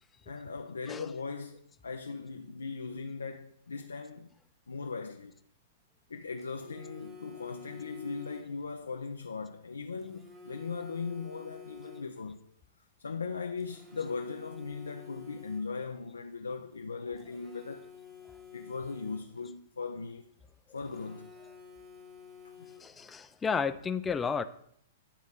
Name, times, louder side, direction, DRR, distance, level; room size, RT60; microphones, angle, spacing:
voice 1, 0.3-4.3 4.7-5.3 6.1-12.5 13.0-17.9 18.5-20.3 20.7-21.3 22.6-22.7, left 4 dB, 80° left, 0.4 m, -39 dB
Telephone, 6.4-8.7 10.0-12.4 13.6-15.9 17.2-19.5 20.8-23.1, left 5 dB, 20° right, 1.2 m, -51 dB
voice 2, 22.8-24.5, left 6 dB, 15° left, 0.4 m, -32 dB
9.6 x 4.1 x 3.6 m
figure-of-eight pair, 105°, 0 cm